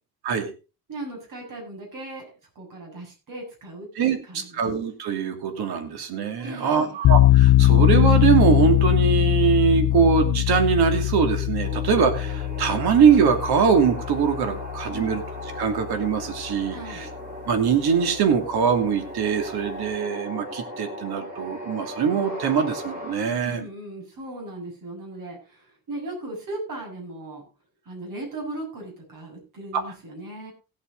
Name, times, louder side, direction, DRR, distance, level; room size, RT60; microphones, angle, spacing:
voice 1, 0.9-2.3 2.6-4.6 6.4-7.0 16.7-17.1 23.3-27.4 27.9-30.5, right 2 dB, 55° right, 1 dB, 7.3 m, -37 dB
voice 2, 4.0-15.2 15.6-17.1 17.5-23.7 29.7-29.8, right 6 dB, 80° right, 6 dB, 2.8 m, -22 dB
sound 1, 7.0-15.9, left 15 dB, 55° left, 0.5 m, -21 dB
sound 2, 11.6-23.1, equal, 25° right, 4.0 m, -37 dB
17.0 x 8.6 x 3.9 m, 0.32 s
cardioid pair, 150°, 37 cm